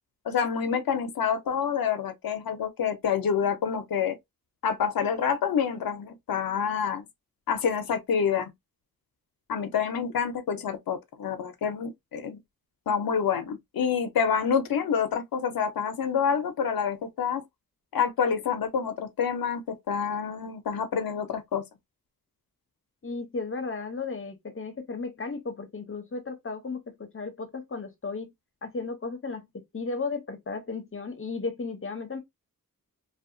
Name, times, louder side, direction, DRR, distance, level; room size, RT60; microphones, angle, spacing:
voice 1, 0.2-4.2 4.6-7.1 7.5-8.5 9.5-12.4 12.9-17.4 17.9-21.6, left 7 dB, 80° left, 0.6 m, -27 dB
voice 2, 23.0-28.3 28.6-32.2, left 4 dB, 35° left, 0.7 m, -35 dB
2.7 x 2.3 x 2.5 m
wide cardioid pair, 115°, 35 cm